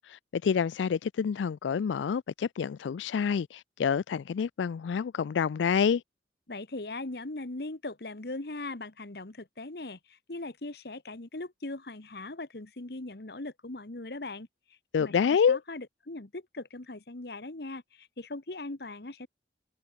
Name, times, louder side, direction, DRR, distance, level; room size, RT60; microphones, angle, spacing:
voice 1, 0.1-6.0 14.9-15.6, left 6 dB, 90° left, 0.4 m, -27 dB
voice 2, 6.5-19.3, left 2 dB, 60° left, 1.4 m, -40 dB
head